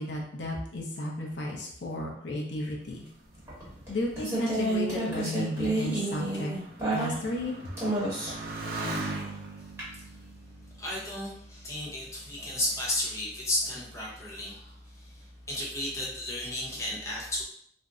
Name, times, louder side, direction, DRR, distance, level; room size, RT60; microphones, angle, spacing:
voice 1, 0.0-3.0 3.9-6.5 6.9-7.6, left 1 dB, 70° left, -1 dB, 0.6 m, -33 dB
Motorcycle, 2.9-11.9 12.7-13.3, right 2 dB, 50° right, 0.5 m, -41 dB
sound 1, 3.5-7.4 7.8-8.5 9.8-9.9, right 2 dB, 15° right, 1.1 m, -29 dB
voice 2, 10.8-17.4, left 1 dB, 15° left, -6 dB, 0.7 m, -33 dB
2.5 x 2.1 x 3.5 m, 0.66 s
head